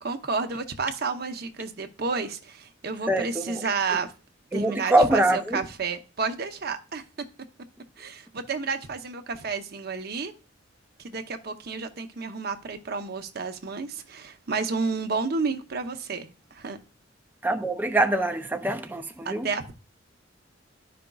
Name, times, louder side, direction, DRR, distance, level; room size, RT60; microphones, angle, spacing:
voice 1, 0.0-4.1 4.5-7.0 8.0-10.3 11.0-16.8 19.2-19.7, right 4 dB, 55° right, 0.8 m, -31 dB
voice 2, 3.1-3.7 4.5-5.6 17.4-19.5, right 1 dB, 10° right, 0.4 m, -24 dB
12.5 x 5.0 x 2.3 m
head